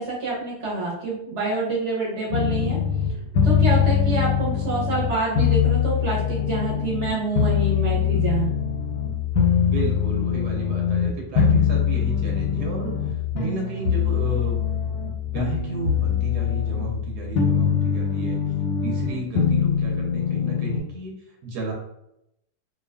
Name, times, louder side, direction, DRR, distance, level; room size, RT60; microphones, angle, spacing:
voice 1, 0.0-2.8 3.4-8.5, right 3 dB, 55° right, -5 dB, 1.0 m, -27 dB
sound 1, 2.3-20.8, left 7 dB, 85° left, 1.2 m, -23 dB
voice 2, 9.5-14.6 15.3-18.4 18.8-21.1 21.4-21.7, right 2 dB, 85° right, -1 dB, 1.2 m, -33 dB
2.7 x 2.3 x 2.2 m, 0.80 s
omnidirectional pair, 1.7 m